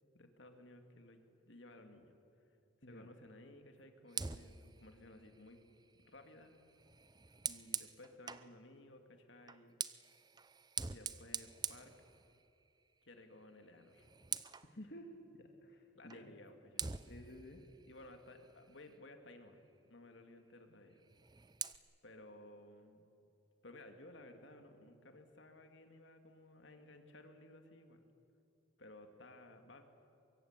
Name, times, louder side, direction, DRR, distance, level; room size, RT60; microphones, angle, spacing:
voice 1, 0.1-2.2 2.8-5.6 6.0-6.5 7.3-9.8 10.9-11.9 13.0-14.1 15.9-16.9 17.9-21.0 22.0-23.0 23.6-28.0 28.8-29.8, left 1 dB, 70° left, 6 dB, 2.5 m, -57 dB
Fire, 4.1-8.5 9.4-12.7 13.0-13.3 13.6-14.7 16.1-16.2 16.8-19.1 21.0-21.8, right 7 dB, 20° right, 0.6 m, -46 dB
voice 2, 14.6-16.3 17.1-17.6, equal, 55° left, 2 dB, 2.0 m, -53 dB
24.0 x 23.0 x 8.3 m, 2.8 s
head